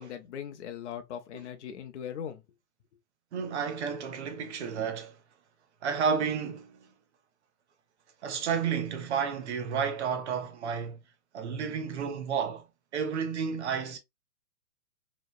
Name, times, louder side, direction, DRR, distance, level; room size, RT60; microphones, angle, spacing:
voice 1, 0.0-2.4, left 9 dB, 50° left, 0.6 m, -39 dB
voice 2, 3.3-5.2 5.8-6.9 8.2-11.0 11.3-12.6 12.9-14.0, right 6 dB, 50° right, 0.6 m, -31 dB
3.0 x 2.2 x 2.2 m
hypercardioid pair, 155°, 45 cm